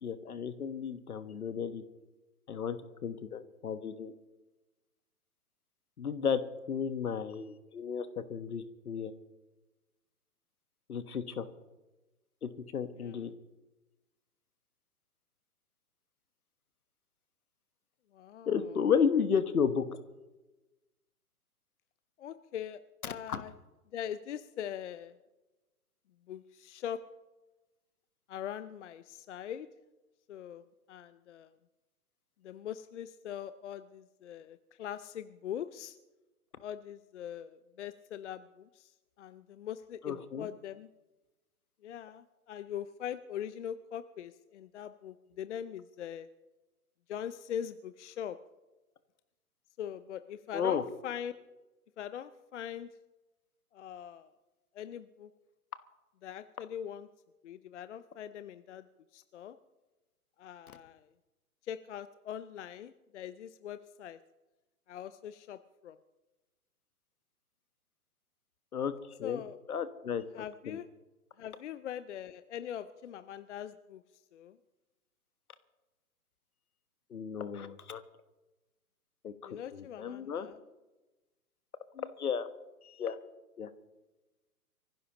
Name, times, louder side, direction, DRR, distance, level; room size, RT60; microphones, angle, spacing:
voice 1, 0.0-1.8 2.5-4.1 6.0-6.4 6.7-9.1 10.9-11.4 12.4-13.3 18.5-19.8 23.0-23.4 40.0-40.5 50.5-50.8 68.7-68.9 69.2-69.4 69.7-70.8 77.1-78.0 79.2-80.5 81.9-82.5 82.8-83.2 83.6-83.7, left 7 dB, 70° left, 12 dB, 1.4 m, -33 dB
voice 2, 18.1-18.5 22.2-23.5 23.9-25.1 26.3-27.0 28.3-29.7 30.3-30.6 30.9-31.5 32.4-36.0 36.6-38.9 39.2-40.9 41.8-46.3 47.1-48.4 49.8-51.3 52.0-52.9 53.7-54.3 54.8-55.3 56.2-57.1 57.4-58.8 59.1-59.6 60.4-61.0 61.7-64.2 64.9-65.6 65.8-66.0 69.2-69.6 70.3-70.9 71.4-74.0 74.3-74.6 79.4-80.6, left 9 dB, 50° left, 12 dB, 0.7 m, -42 dB
24.5 x 15.5 x 3.0 m, 1.1 s
figure-of-eight pair, 125°, 45 cm